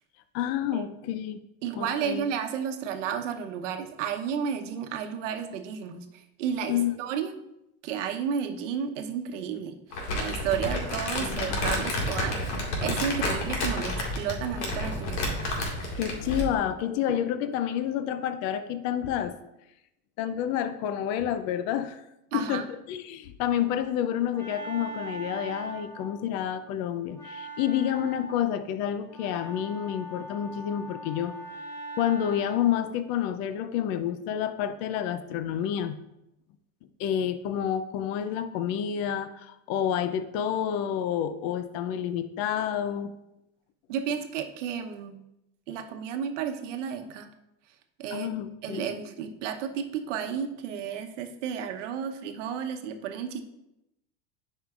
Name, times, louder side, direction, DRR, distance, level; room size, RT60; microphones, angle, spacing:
voice 1, 0.3-1.4 1.7-2.2 6.7-6.9 11.2-11.9 16.0-19.4 20.2-22.0 22.3-31.4 32.0-36.0 37.0-43.1 48.1-48.9, left 10 dB, 45° left, 11 dB, 0.5 m, -29 dB
voice 2, 1.6-6.0 6.4-7.3 7.8-9.7 10.1-12.4 12.8-15.4 22.3-22.6 43.9-45.2 45.7-47.3 48.0-48.3 48.6-53.4, right 8 dB, 80° right, 6 dB, 1.0 m, -32 dB
Crumpling crinkling, 9.9-16.5, left 1 dB, 75° left, 2.0 m, -30 dB
Wind instrument woodwind instrument, 23.8-32.9, right 2 dB, 10° left, 2.1 m, -42 dB
10.5 x 5.5 x 2.4 m, 0.87 s
supercardioid pair, 145°, 36 cm